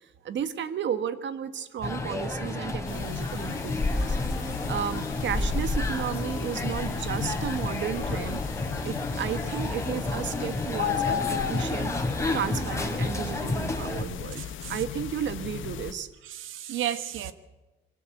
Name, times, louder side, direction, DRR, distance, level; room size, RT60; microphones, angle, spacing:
voice 1, 0.2-14.4 14.7-16.1, right 8 dB, 65° right, 12 dB, 1.6 m, -33 dB
sound 1, 1.8-14.0, left 2 dB, 15° left, 3.9 m, -30 dB
sound 2, 2.9-15.9, left 10 dB, 75° left, 1.3 m, -36 dB
voice 2, 14.3-14.8 16.2-17.3, right 11 dB, 80° right, 12 dB, 1.5 m, -33 dB
22.5 x 16.5 x 8.1 m, 1.1 s
cardioid pair, 90°, 20 cm